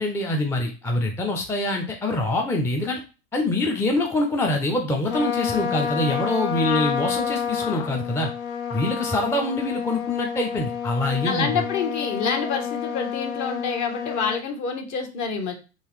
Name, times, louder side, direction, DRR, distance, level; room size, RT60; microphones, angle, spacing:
voice 1, 0.0-3.0 3.3-8.3 8.7-11.5, left 2 dB, 5° left, 2 dB, 0.4 m, -25 dB
Trumpet, 5.1-14.4, left 7 dB, 80° left, 0.7 m, -29 dB
voice 2, 11.2-15.6, left 5 dB, 40° left, 4 dB, 1.0 m, -27 dB
3.8 x 2.6 x 3.0 m, 0.34 s
hypercardioid pair, 100°, 41 cm